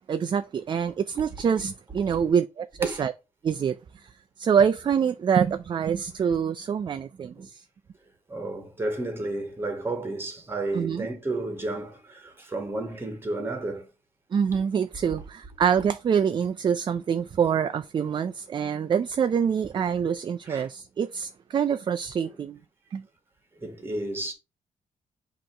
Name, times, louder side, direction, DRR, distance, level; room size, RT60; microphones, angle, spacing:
voice 1, 0.1-3.1 3.4-4.1 4.4-7.6 10.7-11.1 14.3-22.6 22.9-23.0, right 7 dB, 40° right, 0.4 m, -25 dB
voice 2, 8.3-13.9 19.8-19.9 20.4-20.7 22.3-22.4 23.6-24.3, right 2 dB, 20° right, 1.7 m, -32 dB
7.6 x 3.0 x 4.4 m
cardioid pair, 115°, 12 cm